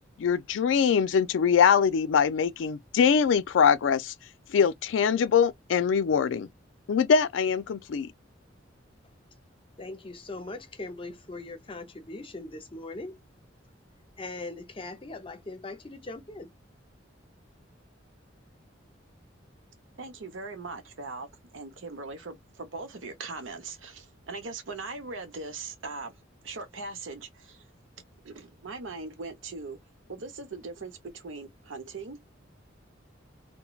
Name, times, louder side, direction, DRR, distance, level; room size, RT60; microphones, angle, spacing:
voice 1, 0.2-4.1 4.5-6.5 6.9-8.1, left 6 dB, 75° left, 0.4 m, -23 dB
voice 2, 9.8-13.2 14.2-16.5, left 2 dB, 30° left, 0.6 m, -40 dB
voice 3, 20.0-26.1 26.4-27.6 28.2-29.8 30.1-32.2, right 3 dB, 85° right, 0.8 m, -40 dB
3.0 x 2.1 x 2.3 m
head